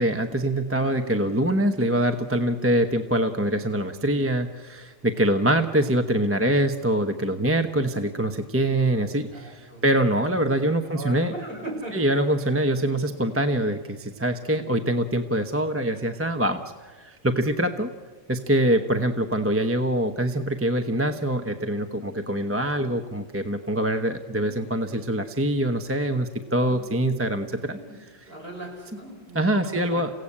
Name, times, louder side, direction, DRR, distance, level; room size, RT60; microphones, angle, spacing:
voice 1, 0.0-11.3 11.9-17.9 18.3-27.8 29.3-30.1, right 1 dB, 10° right, 6 dB, 0.8 m, -24 dB
voice 2, 0.8-1.4 9.3-9.8 10.8-12.1 12.4-12.5 14.5-14.8 18.5-18.8 26.7-26.8 27.7-30.0, right 1 dB, 45° right, -2 dB, 7.0 m, -39 dB
29.0 x 16.5 x 8.6 m, 1.4 s
omnidirectional pair, 1.4 m